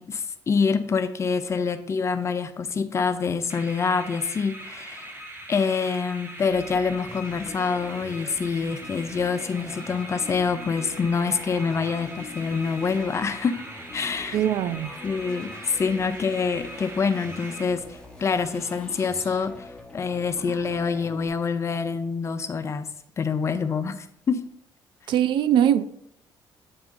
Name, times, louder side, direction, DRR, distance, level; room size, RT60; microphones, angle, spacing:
voice 1, 0.0-5.2 5.5-13.6 13.9-14.4 15.0-22.9 23.2-24.4, left 5 dB, 35° left, 0.5 m, -26 dB
sound 1, 3.5-18.1, right 1 dB, 25° right, 1.0 m, -41 dB
sound 2, 6.5-21.3, left 2 dB, 10° left, 0.9 m, -44 dB
voice 2, 14.3-14.9 25.1-25.8, right 10 dB, 70° right, 0.4 m, -21 dB
7.8 x 3.5 x 3.7 m
cardioid pair, 100°, 8 cm